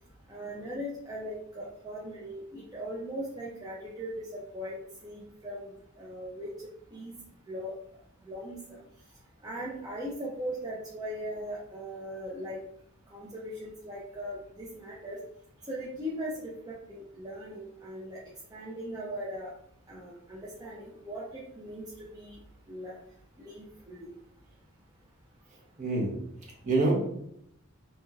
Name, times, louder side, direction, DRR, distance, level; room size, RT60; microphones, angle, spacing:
voice 1, 0.3-4.7 5.0-5.7 6.0-6.5 6.9-7.1 7.5-7.7 8.3-8.8 9.4-12.6 13.1-15.2 15.7-18.2 18.5-19.5 19.9-21.8 22.1-22.4 22.7-23.0 23.4-24.1, equal, 20° right, -6 dB, 0.5 m, -39 dB
voice 2, 25.8-27.1, right 2 dB, 35° right, -2 dB, 0.8 m, -28 dB
2.9 x 2.8 x 2.3 m, 0.74 s
head